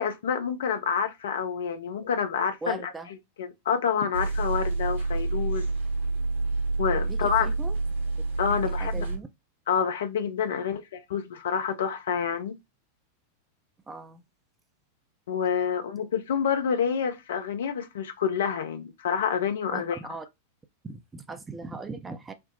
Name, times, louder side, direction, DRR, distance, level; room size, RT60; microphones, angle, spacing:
voice 1, 0.0-2.8 3.4-5.7 6.8-7.5 8.4-9.1 9.7-12.6 15.3-20.0, left 7 dB, 60° left, 0.6 m, -28 dB
voice 2, 2.6-3.1 7.1-7.7 8.5-9.3 13.9-14.3 19.7-20.3 20.8-22.3, right 3 dB, 15° right, 0.5 m, -39 dB
sound 1, 4.1-9.2, right 3 dB, 70° right, 1.8 m, -28 dB
4.3 x 2.0 x 3.8 m
figure-of-eight pair, 90°, 0 cm